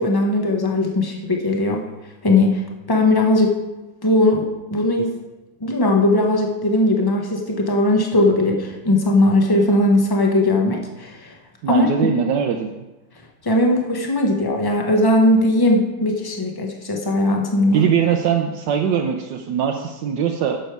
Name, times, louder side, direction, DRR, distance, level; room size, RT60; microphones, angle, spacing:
voice 1, 0.0-1.8 2.2-3.6 4.0-5.1 5.6-11.3 11.7-11.9 13.4-17.9, left 1 dB, 25° left, 1 dB, 0.5 m, -18 dB
voice 2, 11.6-12.7 17.7-20.6, right 7 dB, 70° right, 3 dB, 1.1 m, -21 dB
10.5 x 6.8 x 4.6 m, 1.1 s
omnidirectional pair, 2.3 m